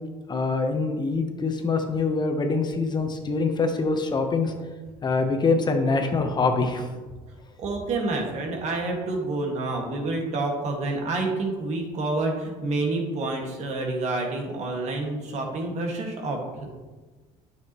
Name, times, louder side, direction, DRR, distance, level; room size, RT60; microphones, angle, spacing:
voice 1, 0.3-4.5 5.0-6.9, left 4 dB, 30° left, 5 dB, 0.9 m, -24 dB
voice 2, 7.6-16.8, right 2 dB, 55° right, 1 dB, 1.9 m, -28 dB
9.3 x 7.0 x 3.1 m, 1.3 s
supercardioid pair, 85°, 14 cm